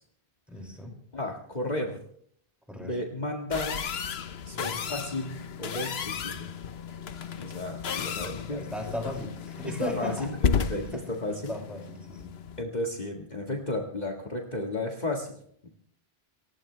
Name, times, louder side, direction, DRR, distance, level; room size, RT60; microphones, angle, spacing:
voice 1, 0.5-0.9 2.7-3.0 4.5-4.8 8.5-10.3 10.7-11.2 11.5-12.3, left 1 dB, ahead, 1 dB, 5.6 m, -36 dB
voice 2, 1.1-2.0 2.8-3.8 4.5-6.5 7.4-8.7 9.6-11.5 12.6-15.7, left 1 dB, 45° left, 1 dB, 1.9 m, -33 dB
sound 1, 3.5-12.6, left 6 dB, 80° left, 1.1 m, -33 dB
28.0 x 15.5 x 3.3 m, 0.65 s
omnidirectional pair, 1.0 m